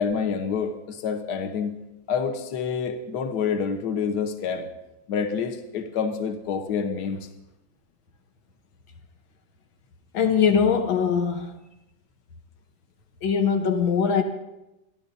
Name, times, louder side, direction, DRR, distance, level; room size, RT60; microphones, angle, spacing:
voice 1, 0.0-1.7 2.1-4.7 5.1-7.2, left 6 dB, 60° left, 1.5 m, -27 dB
voice 2, 10.1-11.5 13.2-14.2, left 6 dB, 90° left, 1.8 m, -21 dB
27.5 x 11.5 x 2.7 m
omnidirectional pair, 2.1 m